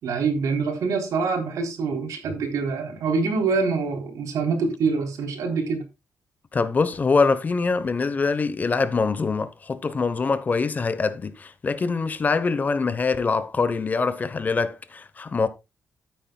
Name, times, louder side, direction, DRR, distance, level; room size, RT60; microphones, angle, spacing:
voice 1, 0.0-5.9, right 4 dB, 85° right, 3.7 m, -25 dB
voice 2, 6.5-15.5, left 4 dB, 30° left, 1.0 m, -24 dB
13.0 x 9.1 x 2.3 m
wide cardioid pair, 155°, 6 cm